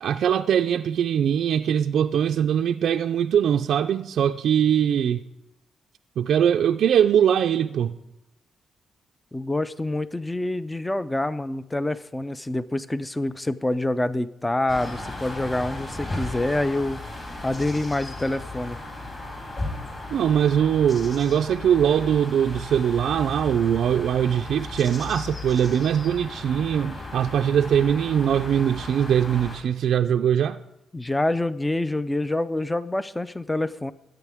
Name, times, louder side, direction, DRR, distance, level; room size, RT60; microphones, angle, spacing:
voice 1, 0.0-5.2 6.2-8.0 20.1-30.6, right 9 dB, 70° right, 0.4 m, -22 dB
voice 2, 9.3-17.0 17.4-18.8 30.9-33.9, left 1 dB, 10° left, 0.4 m, -26 dB
sound 1, 14.7-29.6, left 2 dB, 30° left, 3.9 m, -36 dB
21.5 x 9.0 x 3.5 m
cardioid pair, 135°, 0 cm